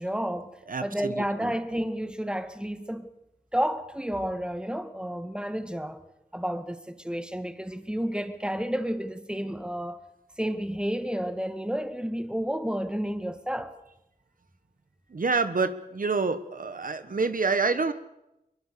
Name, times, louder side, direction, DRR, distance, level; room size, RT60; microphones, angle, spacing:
voice 1, 0.0-3.1 3.5-6.0 6.3-10.0 10.4-13.8, equal, 5° right, 2.0 m, -31 dB
voice 2, 0.7-1.5 15.1-17.9, right 4 dB, 65° right, 1.3 m, -27 dB
23.5 x 22.0 x 6.9 m
cardioid pair, 50°, 15 cm